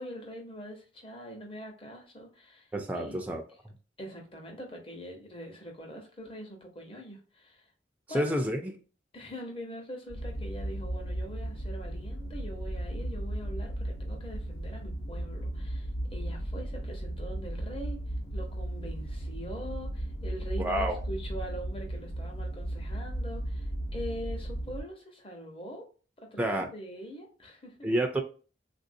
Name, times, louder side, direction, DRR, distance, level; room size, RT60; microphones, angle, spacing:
voice 1, 0.0-2.7 2.9-3.2 4.0-7.7 8.1-8.4 9.1-18.0 18.3-25.9 26.3-27.7, equal, 30° left, 0.9 m, -43 dB
voice 2, 2.7-3.8 8.1-8.8 20.6-21.0 26.4-26.7 27.8-28.2, right 1 dB, 10° right, 0.4 m, -29 dB
sound 1, 10.1-24.8, right 1 dB, 70° left, 0.8 m, -35 dB
3.4 x 2.6 x 2.5 m
head